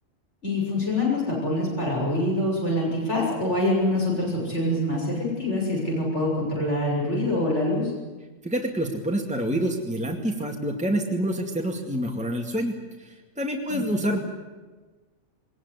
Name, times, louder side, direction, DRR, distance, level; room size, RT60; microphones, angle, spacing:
voice 1, 0.4-7.9 13.7-14.1, left 1 dB, 65° left, -3 dB, 7.0 m, -25 dB
voice 2, 8.4-14.2, right 1 dB, 5° right, 1 dB, 2.3 m, -27 dB
22.0 x 20.0 x 9.8 m, 1.3 s
omnidirectional pair, 1.3 m